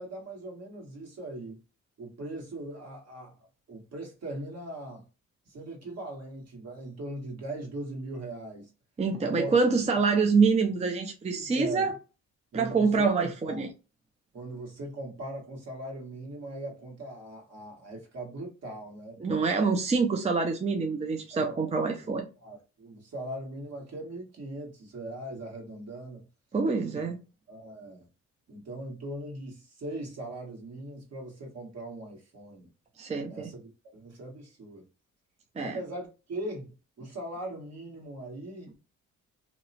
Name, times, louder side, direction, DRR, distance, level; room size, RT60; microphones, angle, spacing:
voice 1, 0.0-1.6 2.0-3.3 3.7-5.0 5.5-8.7 9.2-9.8 11.4-11.9 12.5-13.7 14.3-19.2 21.3-26.2 27.5-28.1 28.5-32.7 33.3-34.9 35.6-38.8, right 1 dB, 55° right, 1.5 m, -40 dB
voice 2, 9.0-11.9 12.5-13.7 19.2-22.3 26.5-27.2 33.0-33.5 35.6-35.8, right 4 dB, 20° right, 0.5 m, -26 dB
2.8 x 2.1 x 2.7 m
cardioid pair, 90°, 30 cm